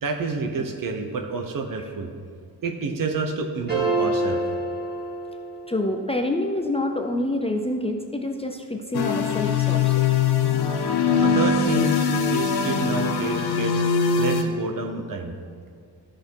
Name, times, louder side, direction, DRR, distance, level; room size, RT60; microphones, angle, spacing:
voice 1, 0.0-2.1 2.6-4.4 11.2-13.7 14.2-15.3, right 4 dB, 55° right, 5 dB, 1.0 m, -29 dB
sound 1, 3.7-5.9, right 2 dB, 25° right, 2.2 m, -26 dB
voice 2, 5.7-9.9, left 1 dB, 15° left, 4 dB, 0.5 m, -27 dB
sound 2, 8.9-14.4, left 6 dB, 75° left, 0.9 m, -22 dB
12.5 x 6.4 x 4.7 m, 2.1 s
wide cardioid pair, 135°, 39 cm